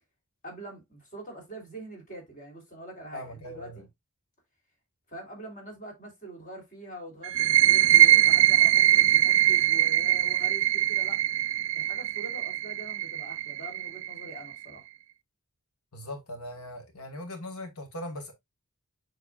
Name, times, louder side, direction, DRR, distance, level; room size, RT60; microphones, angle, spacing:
voice 1, 0.4-3.9 5.1-11.2 11.7-14.8, right 1 dB, 35° left, 3.3 m, -44 dB
voice 2, 3.1-3.8 15.9-18.3, left 1 dB, 90° left, 1.4 m, -39 dB
sound 1, 7.2-14.6, right 13 dB, 60° right, 0.4 m, -22 dB
7.2 x 6.2 x 2.4 m
head